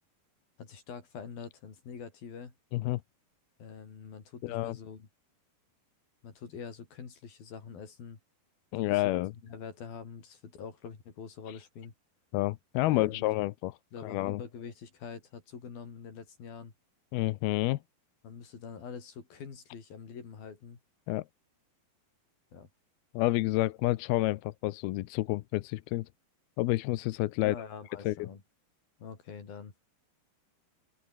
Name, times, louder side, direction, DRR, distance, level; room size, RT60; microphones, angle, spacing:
voice 1, 0.6-2.5 3.6-5.1 6.2-8.2 8.8-9.0 9.4-11.9 12.8-13.3 13.9-16.7 18.2-20.8 22.5-22.7 27.4-28.4 29.0-29.7, left 6 dB, 60° left, 6.1 m, -45 dB
voice 2, 4.4-4.8 8.7-9.3 12.3-14.4 17.1-17.8 21.1-21.2 23.1-26.1 26.6-27.6 28.0-28.3, left 18 dB, 80° left, 2.5 m, -29 dB
omnidirectional pair, 4.8 m